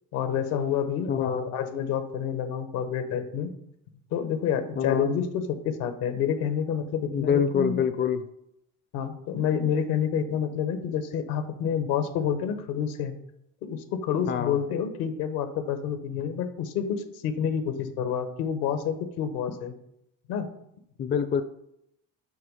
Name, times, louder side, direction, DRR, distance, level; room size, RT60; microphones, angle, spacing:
voice 1, 0.1-3.5 4.1-7.8 8.9-13.1 13.6-19.7 20.3-20.5, left 8 dB, 75° left, 9 dB, 1.0 m, -28 dB
voice 2, 1.1-1.5 4.8-5.1 7.1-8.2 14.3-14.6 21.0-21.4, left 7 dB, 30° left, 10 dB, 0.5 m, -25 dB
7.8 x 3.1 x 5.4 m, 0.77 s
supercardioid pair, 75°, 36 cm